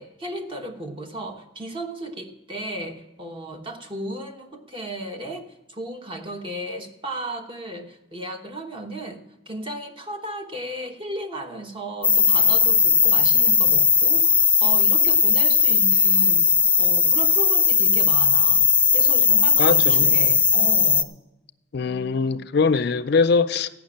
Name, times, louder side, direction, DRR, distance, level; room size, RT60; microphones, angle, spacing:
voice 1, 0.0-5.4 5.7-16.5 16.8-18.6 18.9-21.1, right 1 dB, 30° right, 1.1 m, -35 dB
sound 1, 12.0-21.0, left 5 dB, 10° left, 0.5 m, -18 dB
voice 2, 19.6-20.3 21.7-23.7, left 4 dB, 60° left, 0.5 m, -22 dB
14.5 x 6.0 x 8.6 m
head